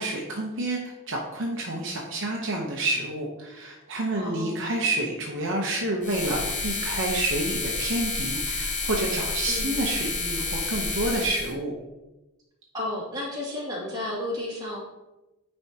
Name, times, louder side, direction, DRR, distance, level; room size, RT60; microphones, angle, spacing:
voice 1, 0.0-11.7, right 2 dB, 60° right, 0 dB, 0.8 m, -29 dB
voice 2, 4.2-4.6 9.5-9.8 12.7-14.8, left 1 dB, 20° right, -6 dB, 2.2 m, -32 dB
sound 1, 6.0-11.5, left 3 dB, 35° left, 0.9 m, -30 dB
9.4 x 4.4 x 2.8 m, 1.0 s
head